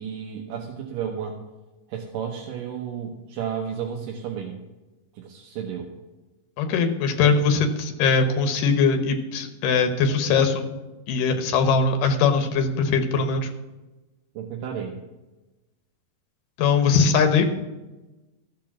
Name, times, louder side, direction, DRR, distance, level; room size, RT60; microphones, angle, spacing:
voice 1, 0.0-1.4 1.9-4.6 5.1-5.9 14.3-14.9, right 8 dB, 80° right, -1 dB, 2.7 m, -32 dB
voice 2, 6.6-10.7 11.1-13.5 16.6-17.5, left 5 dB, 80° left, 6 dB, 2.7 m, -21 dB
13.5 x 6.8 x 6.0 m, 1.1 s
omnidirectional pair, 3.9 m